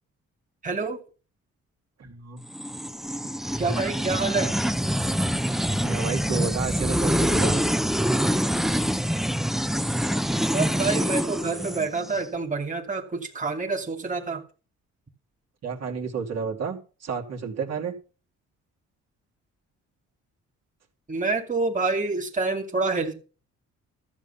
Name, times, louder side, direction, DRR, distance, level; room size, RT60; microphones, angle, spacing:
voice 1, 0.6-1.0 3.6-4.5 10.5-14.4 21.1-23.1, right 3 dB, 25° right, 2.6 m, -27 dB
voice 2, 2.0-2.4 5.6-7.7 15.6-17.9, right 6 dB, 55° right, 2.7 m, -31 dB
sound 1, 2.5-12.2, equal, ahead, 0.7 m, -25 dB
13.5 x 7.3 x 5.6 m
cardioid pair, 90°, 30 cm